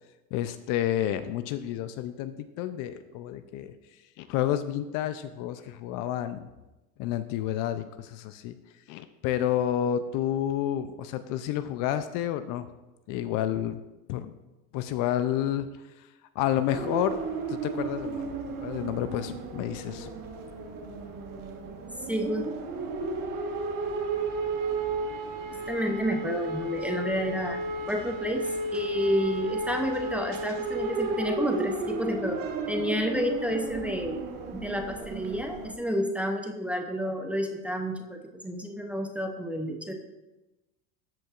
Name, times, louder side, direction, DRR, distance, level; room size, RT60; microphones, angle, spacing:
voice 1, 0.3-3.7 4.2-6.5 7.0-8.5 8.9-12.7 13.1-13.8 14.1-14.3 14.7-15.7 16.4-17.2 17.5-20.1, left 11 dB, 50° left, 12 dB, 0.5 m, -30 dB
sound 1, 16.7-35.7, right 3 dB, 50° right, 1.4 m, -33 dB
voice 2, 22.1-22.4 25.5-27.6 27.9-28.5 28.7-32.4 32.7-34.2 34.5-39.9, equal, 5° right, 3 dB, 0.6 m, -30 dB
13.0 x 5.2 x 2.4 m, 1.0 s
supercardioid pair, 105°, 42 cm